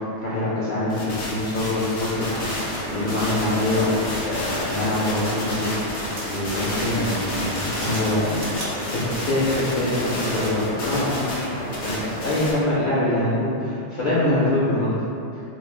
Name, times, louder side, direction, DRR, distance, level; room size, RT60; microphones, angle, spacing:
voice 1, 0.0-2.5 2.9-4.0 4.3-9.0 9.2-14.9, left 1 dB, 60° left, -10 dB, 0.5 m, -24 dB
sound 1, 0.9-12.5, left 1 dB, 75° left, 0.9 m, -31 dB
sound 2, 2.1-12.4, right 1 dB, 65° right, 0.8 m, -34 dB
2.3 x 2.0 x 3.1 m, 2.6 s
omnidirectional pair, 1.2 m